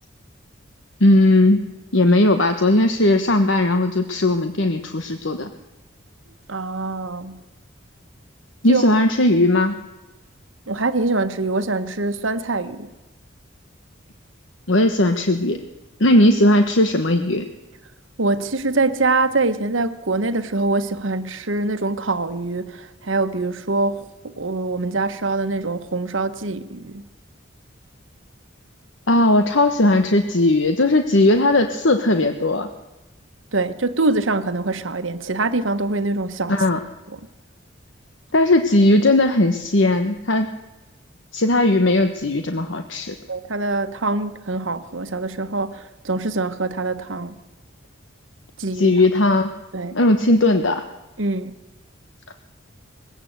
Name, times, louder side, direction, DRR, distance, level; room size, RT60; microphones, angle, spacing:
voice 1, 1.0-1.6 1.9-5.5 8.6-9.7 14.7-15.6 16.0-17.5 29.1-32.7 36.5-36.8 38.3-40.5 41.3-43.1 48.7-49.5 49.9-50.8 52.3-52.4, left 1 dB, 70° left, 1.3 m, -17 dB
voice 2, 6.5-7.4 8.7-9.0 10.7-12.9 18.2-24.1 24.4-27.1 33.5-36.5 37.1-37.2 43.3-47.4 48.6-49.0 49.7-50.0 51.2-51.5, right 3 dB, 80° right, 1.3 m, -24 dB
21.0 x 17.0 x 8.2 m
head